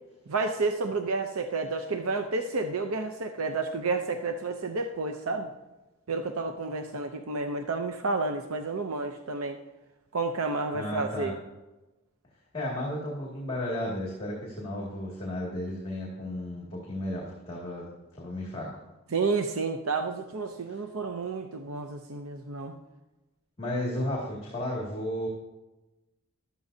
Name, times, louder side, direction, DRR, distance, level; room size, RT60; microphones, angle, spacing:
voice 1, 0.3-5.5 6.1-9.6 10.1-11.3 19.1-22.7, right 3 dB, 90° right, 6 dB, 0.7 m, -30 dB
voice 2, 10.7-11.3 12.5-18.7 20.7-20.8 23.6-25.3, left 1 dB, 25° left, -3 dB, 2.2 m, -33 dB
13.0 x 13.0 x 2.7 m, 1.1 s
head